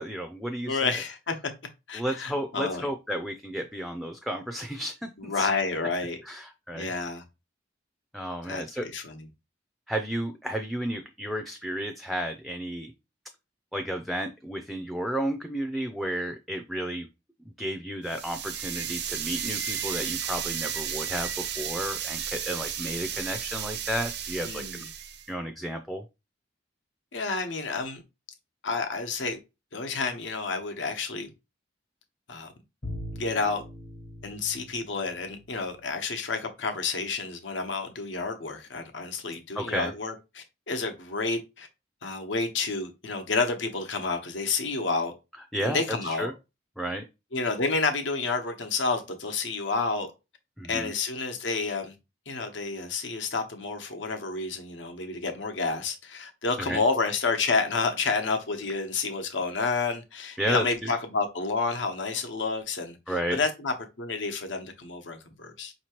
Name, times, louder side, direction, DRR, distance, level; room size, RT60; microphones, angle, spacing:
voice 1, 0.0-1.0 1.9-5.5 6.2-6.9 8.1-8.9 9.9-12.9 13.7-17.1 17.6-24.8 25.3-26.0 39.6-39.9 45.5-46.3 46.8-47.0 50.6-50.9 56.6-56.8 60.4-60.9 63.1-63.4, equal, ahead, 0.4 m, -32 dB
voice 2, 0.7-1.3 1.9-2.8 5.2-6.2 6.7-7.2 8.4-9.3 24.4-24.9 27.1-28.0 28.6-29.4 29.7-31.3 32.3-32.5 33.1-33.6 34.2-41.7 42.0-45.1 45.6-46.3 47.3-50.1 50.7-51.9 52.3-65.7, left 4 dB, 75° left, 1.0 m, -30 dB
sound 1, 18.1-25.3, right 8 dB, 60° right, 0.5 m, -33 dB
Bowed string instrument, 32.8-35.9, left 1 dB, 45° left, 0.9 m, -41 dB
5.5 x 2.9 x 2.9 m
head